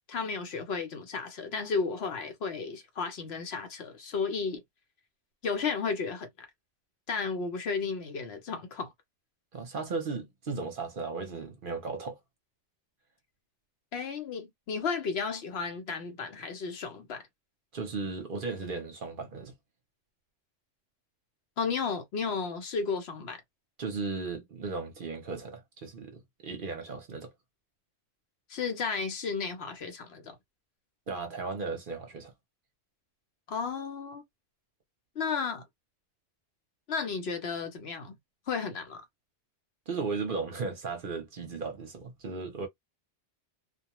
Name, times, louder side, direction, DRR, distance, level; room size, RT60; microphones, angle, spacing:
voice 1, 0.1-4.6 5.4-6.5 7.1-8.9 13.9-17.3 21.6-23.4 28.5-30.4 33.5-34.2 35.2-35.6 36.9-38.1 38.5-39.0, left 5 dB, 65° left, 0.9 m, -33 dB
voice 2, 9.5-12.2 17.7-19.5 23.8-27.3 31.1-32.3 39.9-42.7, right 4 dB, 55° right, 0.7 m, -36 dB
2.2 x 2.2 x 2.9 m
omnidirectional pair, 1.2 m